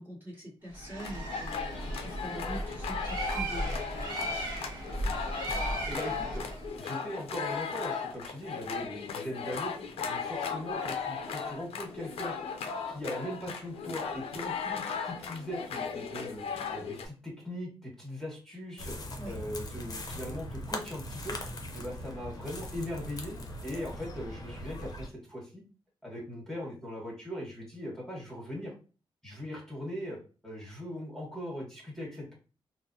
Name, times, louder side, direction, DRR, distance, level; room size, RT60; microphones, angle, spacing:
voice 1, 0.0-4.6 19.2-19.4, equal, 20° right, -7 dB, 1.3 m, -44 dB
Bird, 0.7-6.7, right 1 dB, 50° right, 1.1 m, -36 dB
sound 1, 1.0-17.1, left 6 dB, 90° left, 0.5 m, -37 dB
voice 2, 5.9-6.4 6.8-9.7 10.0-12.3 12.8-16.4 16.7-19.0 19.2-21.4 21.7-23.4 23.6-25.6 26.0-28.7 29.2-30.2 30.4-32.3, left 1 dB, 5° left, -3 dB, 1.5 m, -39 dB
sound 2, 18.8-25.1, left 1 dB, 40° left, 0.7 m, -40 dB
3.9 x 2.1 x 2.7 m, 0.35 s
cardioid pair, 105°, 10 cm